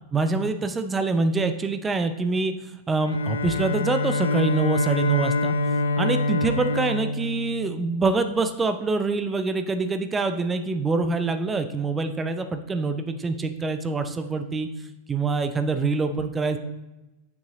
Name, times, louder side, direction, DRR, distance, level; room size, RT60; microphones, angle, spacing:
voice 1, 0.1-2.5 2.9-5.6 6.0-14.7 15.1-16.6, right 3 dB, 15° right, 8 dB, 0.6 m, -25 dB
Bowed string instrument, 3.0-8.2, left 2 dB, 75° left, 0.5 m, -26 dB
7.1 x 6.3 x 3.7 m, 1.0 s
figure-of-eight pair, 90°, 0 cm